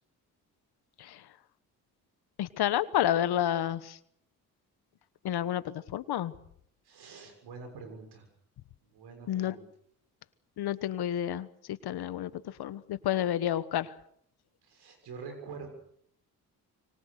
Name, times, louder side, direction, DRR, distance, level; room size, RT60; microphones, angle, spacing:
voice 1, 2.4-4.0 5.2-6.3 9.3-9.5 10.6-13.9, left 11 dB, 75° left, 15 dB, 1.3 m, -30 dB
voice 2, 6.9-8.2 8.9-9.7 14.6-15.7, right 5 dB, 80° right, 5 dB, 6.8 m, -45 dB
25.5 x 23.5 x 6.6 m, 0.69 s
supercardioid pair, 55°, 39 cm